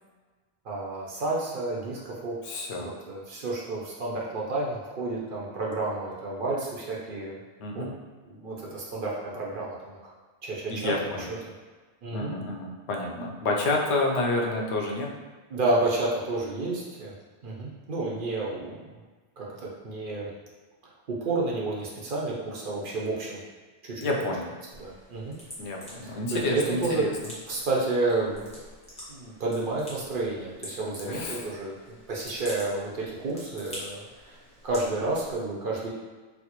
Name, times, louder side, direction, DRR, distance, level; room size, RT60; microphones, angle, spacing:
voice 1, 0.6-7.4 7.7-7.9 8.2-10.1 10.4-11.4 12.0-12.3 15.5-17.1 17.4-19.0 19.4-20.3 21.1-23.4 23.8-24.3 24.8-25.4 26.0-27.0 27.5-28.6 29.1-34.4 34.6-35.9, right 2 dB, 55° right, -4 dB, 0.8 m, -31 dB
voice 2, 2.4-2.9 7.6-7.9 10.7-11.3 12.1-15.1 24.0-24.5 25.6-27.1 31.1-31.5, left 2 dB, 85° left, -1 dB, 0.9 m, -29 dB
sound 1, 24.7-35.4, equal, 5° left, 0.9 m, -46 dB
4.2 x 2.0 x 2.9 m, 1.3 s
omnidirectional pair, 1.1 m